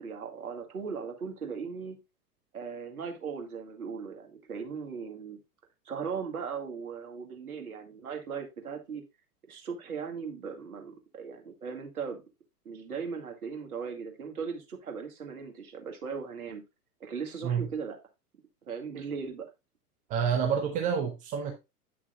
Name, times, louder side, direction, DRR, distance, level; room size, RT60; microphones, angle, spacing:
voice 1, 0.0-2.0 2.5-5.4 5.9-9.0 9.5-12.2 12.7-16.6 17.0-18.0 18.7-19.5, right 6 dB, 65° right, 2.1 m, -38 dB
voice 2, 20.1-21.5, right 7 dB, 15° right, 0.6 m, -28 dB
9.5 x 6.0 x 2.4 m
figure-of-eight pair, 105°, 47 cm